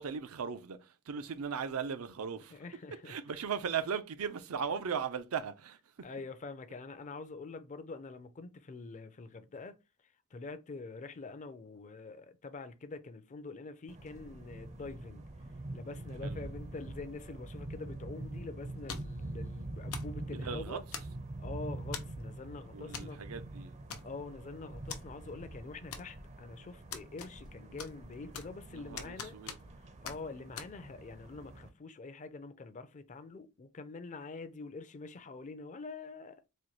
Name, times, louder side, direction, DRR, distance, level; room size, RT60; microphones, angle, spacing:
voice 1, 0.0-2.6 3.0-6.1 16.2-16.4 20.2-20.8 22.7-23.8 28.7-29.6, right 6 dB, 80° right, 0.5 m, -38 dB
voice 2, 2.5-3.2 6.0-9.8 10.3-15.2 15.7-20.8 21.4-23.2 24.0-29.4 29.8-36.4, left 3 dB, 35° left, 0.4 m, -45 dB
sound 1, 13.9-31.7, right 2 dB, 30° right, 0.5 m, -45 dB
sound 2, 18.9-19.2 19.9-20.2 20.9-21.4 21.9-22.2 22.9-23.1 23.4-23.5 23.9-24.4 24.9-25.0 25.9-26.4 26.9-27.5 27.8-28.6 29.0-29.8 30.0-30.2 30.6-30.7, left 6 dB, 85° left, 0.7 m, -43 dB
4.2 x 2.2 x 3.1 m
head